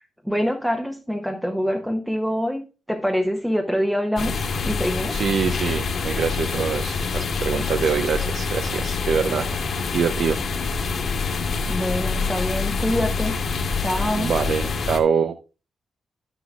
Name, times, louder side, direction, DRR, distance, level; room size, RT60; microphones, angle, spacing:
voice 1, 0.2-5.2 11.7-13.4 13.8-14.3, equal, ahead, 3 dB, 0.9 m, -25 dB
sound 1, 4.2-15.0, left 4 dB, 50° left, 2.0 m, -26 dB
voice 2, 5.1-10.4 14.1-15.4, right 6 dB, 60° right, 8 dB, 0.6 m, -24 dB
11.5 x 9.9 x 2.4 m, 0.32 s
wide cardioid pair, 145°, 0 cm